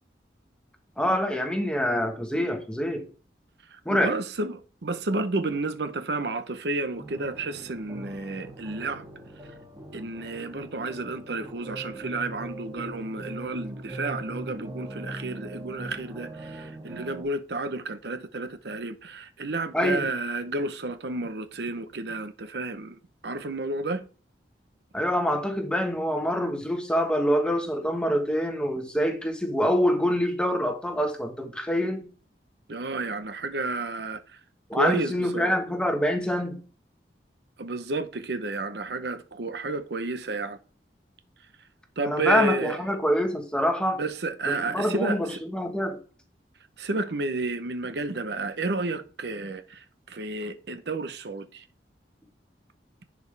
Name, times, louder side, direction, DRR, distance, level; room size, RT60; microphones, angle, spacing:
voice 1, 1.0-3.1 3.8-4.2 19.7-20.1 24.9-32.1 34.7-36.6 42.0-44.0 44.5-46.0, equal, 5° left, 1.2 m, -25 dB
voice 2, 3.7-9.1 9.9-24.0 32.7-34.4 34.7-35.5 37.6-40.6 42.0-42.8 44.0-45.4 46.8-51.6, right 2 dB, 65° right, 0.8 m, -31 dB
Returning To The Surface, 7.0-17.2, right 1 dB, 20° right, 1.5 m, -41 dB
10.5 x 5.2 x 3.3 m
head